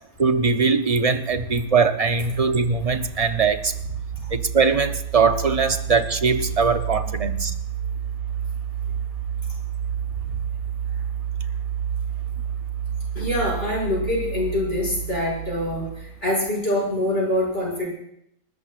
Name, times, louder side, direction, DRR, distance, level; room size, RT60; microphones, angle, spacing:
voice 1, 0.2-3.7 4.3-7.5, right 5 dB, 40° right, 8 dB, 0.6 m, -21 dB
sound 1, 2.2-16.3, right 8 dB, 85° right, 1.6 m, -30 dB
voice 2, 13.1-17.9, left 1 dB, 40° left, -4 dB, 6.4 m, -25 dB
28.5 x 13.5 x 2.5 m, 0.74 s
omnidirectional pair, 1.5 m